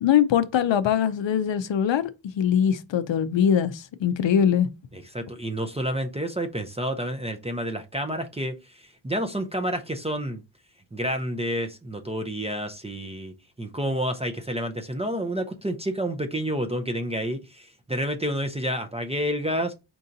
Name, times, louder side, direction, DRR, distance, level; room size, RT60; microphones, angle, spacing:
voice 1, 0.0-2.0 2.4-4.7, left 8 dB, 65° left, 0.5 m, -22 dB
voice 2, 4.9-10.4 10.9-19.7, equal, 15° right, 0.4 m, -29 dB
4.6 x 2.7 x 3.8 m
wide cardioid pair, 140°, 49 cm